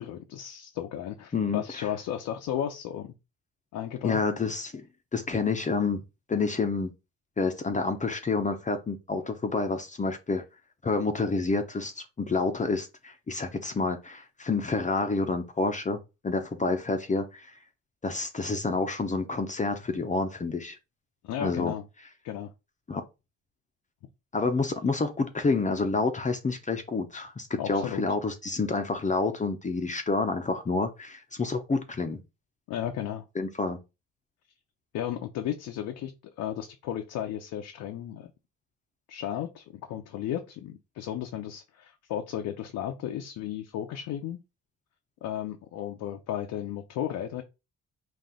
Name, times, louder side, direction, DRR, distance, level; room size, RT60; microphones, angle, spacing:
voice 1, 0.0-3.1 3.7-4.2 21.2-21.8 22.2-22.5 27.6-28.0 32.7-33.2 34.9-38.3 39.1-44.4 45.2-47.4, left 10 dB, 80° left, 0.6 m, -34 dB
voice 2, 1.3-1.9 4.0-4.9 5.1-6.0 6.3-6.9 7.4-10.4 10.8-16.0 16.2-17.6 18.0-20.8 21.4-21.7 22.9-23.0 24.3-32.2 33.4-33.8, left 3 dB, 25° left, 0.6 m, -28 dB
4.2 x 2.5 x 3.6 m
cardioid pair, 90°, 30 cm